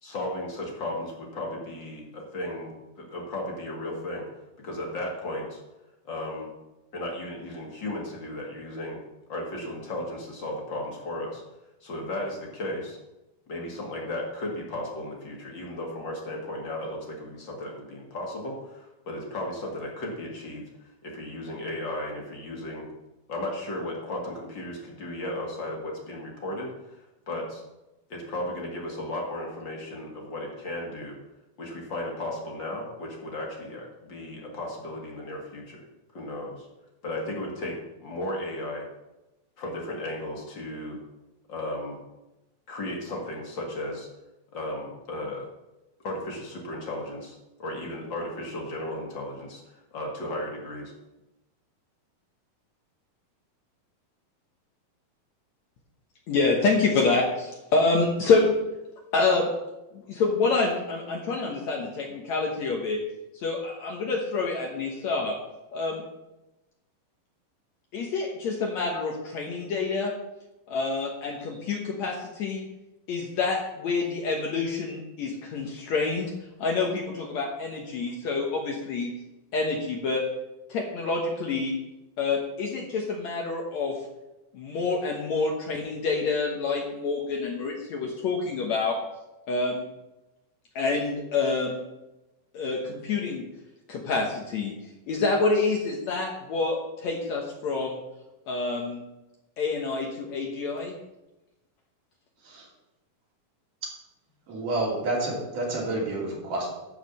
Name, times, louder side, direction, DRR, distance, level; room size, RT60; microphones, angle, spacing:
voice 1, 0.0-4.2 4.6-5.6 6.0-6.5 6.9-9.0 9.3-11.4 11.8-13.0 13.5-22.9 23.3-27.0 27.3-27.6 28.1-31.2 31.6-35.8 36.1-36.7 37.0-37.8 38.0-38.9 39.6-41.0 41.5-42.0 42.7-44.1 44.5-45.5 46.0-50.9, left 1 dB, 40° left, -1 dB, 2.2 m, -35 dB
voice 2, 56.3-58.6 59.1-59.5 59.9-63.0 63.3-65.4 65.7-66.0 67.9-70.1 70.7-72.6 73.1-76.3 76.6-79.1 79.5-80.2 80.7-81.7 82.2-84.0 84.5-89.0 89.5-89.8 90.8-91.8 92.5-93.5 93.9-94.7 95.1-98.0 98.5-99.0 99.6-101.0, left 3 dB, 65° left, 0 dB, 2.1 m, -27 dB
voice 3, 104.5-106.7, right 2 dB, 65° right, -3 dB, 4.4 m, -29 dB
12.0 x 4.9 x 7.4 m, 0.98 s
omnidirectional pair, 4.0 m